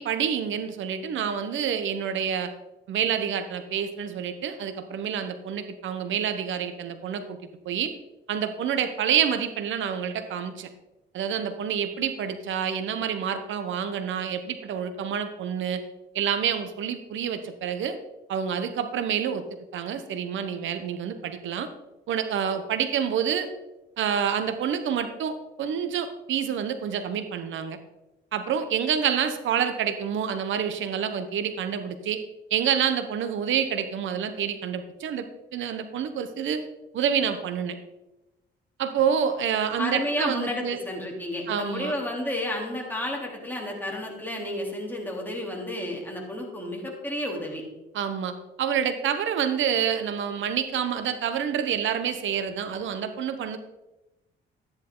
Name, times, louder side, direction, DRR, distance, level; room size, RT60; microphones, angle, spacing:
voice 1, 0.0-2.5 2.9-7.4 7.6-7.9 8.3-10.7 11.1-15.8 16.1-18.0 18.3-19.4 19.7-21.7 22.1-23.5 24.0-27.8 28.3-32.2 32.5-35.2 35.5-36.6 36.9-37.8 38.8-40.8 41.5-41.9 47.9-53.6, right 8 dB, 75° right, 9 dB, 1.0 m, -28 dB
voice 2, 39.8-47.6, left 1 dB, 10° left, -1 dB, 3.4 m, -31 dB
13.0 x 9.8 x 3.9 m, 1.0 s
cardioid pair, 90°, 20 cm